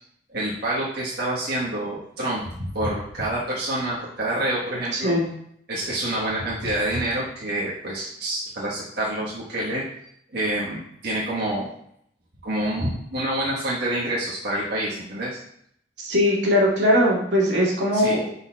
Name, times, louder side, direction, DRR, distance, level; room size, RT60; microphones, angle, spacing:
voice 1, 0.3-5.1 5.7-9.8 10.3-11.7 12.4-15.4 17.9-18.2, right 1 dB, 65° right, -7 dB, 1.3 m, -27 dB
voice 2, 4.9-5.3 16.0-18.2, left 1 dB, 85° right, -4 dB, 2.1 m, -20 dB
10.5 x 4.2 x 2.3 m, 0.71 s
head